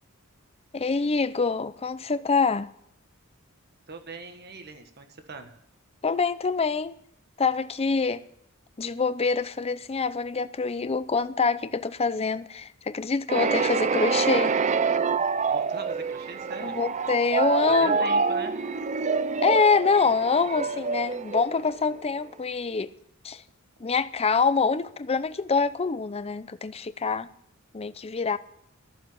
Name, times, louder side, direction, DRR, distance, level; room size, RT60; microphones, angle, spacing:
voice 1, 0.7-2.7 6.0-6.9 7.4-8.2 8.8-14.6 16.6-18.1 19.4-22.9 23.2-23.4 23.8-27.3 27.7-28.4, left 4 dB, 30° left, 0.6 m, -25 dB
voice 2, 3.9-5.5 15.5-16.8 17.7-18.6, right 4 dB, 50° right, 1.5 m, -40 dB
sound 1, 13.3-22.0, right 5 dB, 35° right, 0.5 m, -26 dB
14.0 x 7.3 x 9.3 m
head